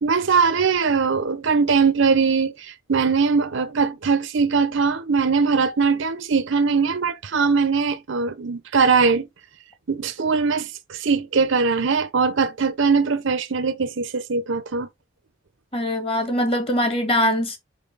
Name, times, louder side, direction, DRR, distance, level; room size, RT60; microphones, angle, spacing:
voice 1, 0.0-9.3 9.9-14.9, right 5 dB, 65° right, 0.7 m, -21 dB
voice 2, 15.7-17.6, left 1 dB, 25° left, 1.6 m, -22 dB
5.4 x 4.8 x 3.9 m
head